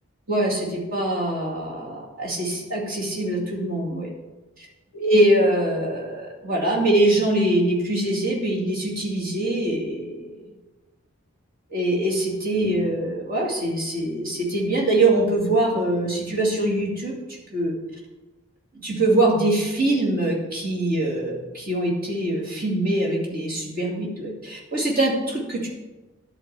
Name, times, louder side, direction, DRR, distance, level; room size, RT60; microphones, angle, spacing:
voice 1, 0.3-4.1 4.9-10.5 11.7-17.1 17.5-17.7 18.7-25.7, right 1 dB, 40° right, -3 dB, 2.4 m, -23 dB
11.0 x 4.0 x 7.6 m, 1.1 s
head